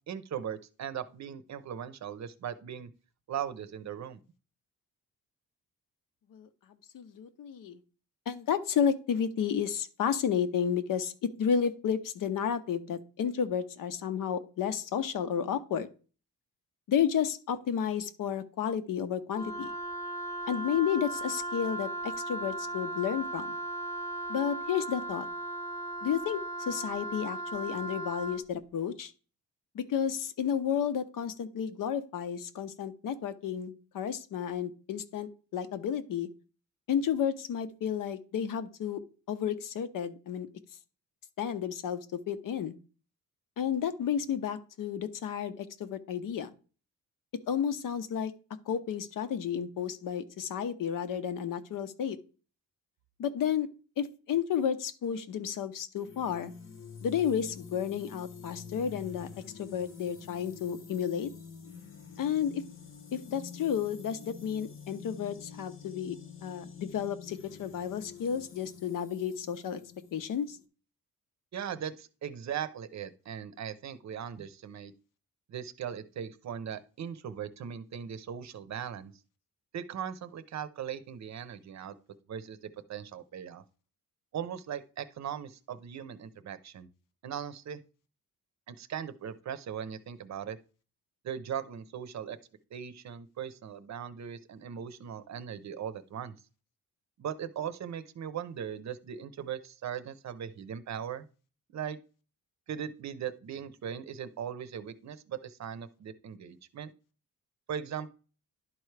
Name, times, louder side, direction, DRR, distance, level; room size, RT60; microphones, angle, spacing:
voice 1, 0.1-2.9 3.3-4.2 71.5-74.9 75.5-79.1 79.7-81.9 82.3-83.6 84.3-86.9 87.2-87.8 88.7-90.6 91.2-92.4 92.7-96.3 97.2-101.3 101.7-102.0 102.7-106.9 107.7-108.1, right 8 dB, 55° right, 13 dB, 0.7 m, -39 dB
voice 2, 6.9-7.8 8.3-15.9 16.9-19.7 20.5-23.5 24.3-25.3 26.0-29.1 29.7-36.3 36.9-39.0 39.3-40.5 41.4-42.7 43.6-46.5 47.5-48.3 48.7-52.2 53.2-53.7 54.0-56.5 57.0-59.3 59.6-61.3 62.2-62.6 63.1-66.2 66.4-69.8 70.1-70.6, left 8 dB, 70° left, 12 dB, 0.8 m, -32 dB
Wind instrument woodwind instrument, 19.3-28.4, right 1 dB, 10° left, 0.6 m, -37 dB
sound 1, 56.0-70.7, left 6 dB, 40° left, 0.9 m, -48 dB
11.0 x 4.6 x 3.3 m, 0.37 s
cardioid pair, 135°, 34 cm